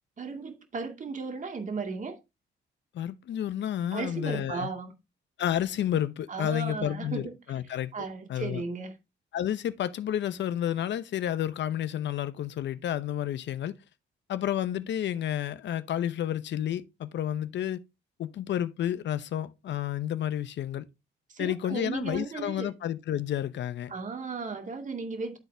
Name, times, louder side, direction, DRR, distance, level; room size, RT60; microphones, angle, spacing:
voice 1, 0.2-2.2 3.9-4.9 6.3-7.3 7.9-9.0 21.3-22.7 23.9-25.4, right 4 dB, 40° right, 2.3 m, -35 dB
voice 2, 2.9-4.7 5.4-7.9 8.3-8.6 9.3-13.8 14.3-17.8 18.2-20.9 21.4-23.9, left 11 dB, 65° left, 0.8 m, -30 dB
11.5 x 4.2 x 3.4 m
cardioid pair, 90°, 20 cm